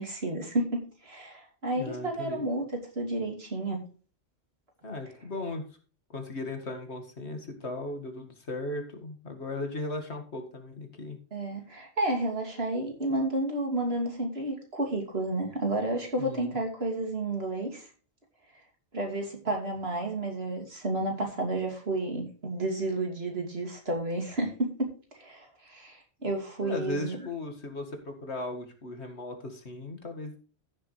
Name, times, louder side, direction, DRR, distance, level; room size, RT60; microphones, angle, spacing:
voice 1, 0.0-2.6 2.9-3.8 11.3-17.9 18.9-24.7 25.1-27.2, right 2 dB, 70° right, 2 dB, 3.0 m, -31 dB
voice 2, 1.7-2.5 4.8-5.7 6.1-11.2 16.2-16.6 26.6-30.4, left 2 dB, 90° left, 5 dB, 2.3 m, -37 dB
15.0 x 6.9 x 3.3 m, 0.38 s
omnidirectional pair, 1.1 m